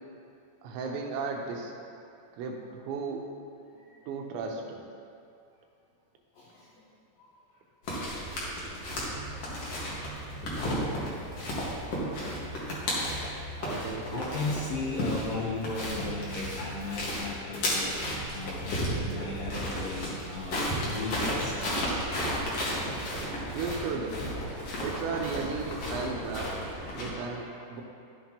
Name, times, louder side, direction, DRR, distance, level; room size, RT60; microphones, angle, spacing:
voice 1, 0.6-1.7 2.4-3.3 4.1-4.8 13.6-14.3 23.5-24.2 24.8-26.6 26.9-27.8, right 4 dB, 90° right, 1 dB, 3.2 m, -35 dB
voice 2, 6.4-6.7 7.2-7.3 9.0-9.4 10.9-11.6 12.0-12.6 13.1-13.3 13.8-21.7 25.3-25.8 26.5-27.6, left 3 dB, 75° left, -5 dB, 2.1 m, -37 dB
sound 1, 7.8-27.1, equal, 55° left, 1.7 m, -33 dB
sound 2, 9.1-19.3, right 1 dB, 70° right, 1.9 m, -46 dB
13.0 x 7.8 x 2.9 m, 2.4 s
omnidirectional pair, 5.1 m